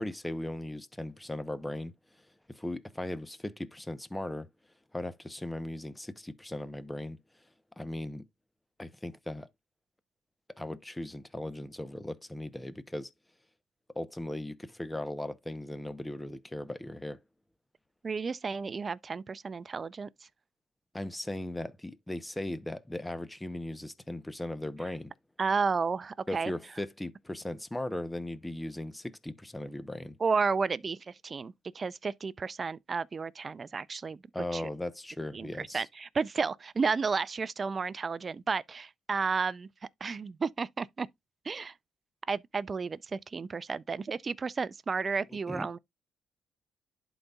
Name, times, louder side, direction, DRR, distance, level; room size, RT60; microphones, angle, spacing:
voice 1, 0.0-1.9 2.5-4.5 4.9-7.2 7.8-8.2 8.8-9.5 10.6-13.1 13.9-17.2 20.9-25.1 26.3-30.2 34.3-35.8 45.5-45.7, left 1 dB, 10° left, 0.7 m, -38 dB
voice 2, 18.0-20.1 25.4-26.5 30.2-34.2 34.5-34.6 35.3-39.7 40.0-41.1 41.5-41.7 42.3-45.8, right 5 dB, 35° right, 0.4 m, -32 dB
11.5 x 4.0 x 2.3 m
cardioid pair, 90°, 0 cm